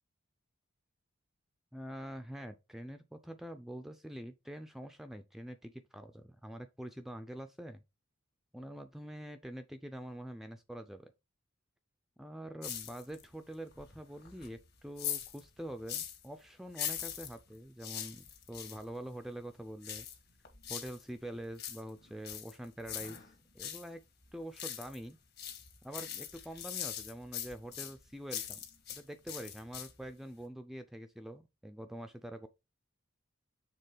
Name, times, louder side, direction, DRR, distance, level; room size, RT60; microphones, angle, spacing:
voice 1, 1.7-7.8 8.5-11.1 12.2-20.1 20.7-24.0 24.3-25.2 25.8-28.6 28.9-32.5, right 1 dB, ahead, 0.4 m, -45 dB
sound 1, 12.6-13.3 13.7-16.3 16.7-18.8 19.8-21.0 21.4-23.9 24.2-25.1 25.4-29.0 29.3-30.1 30.4-30.5, left 10 dB, 50° left, 1.5 m, -42 dB
6.7 x 3.6 x 4.9 m
head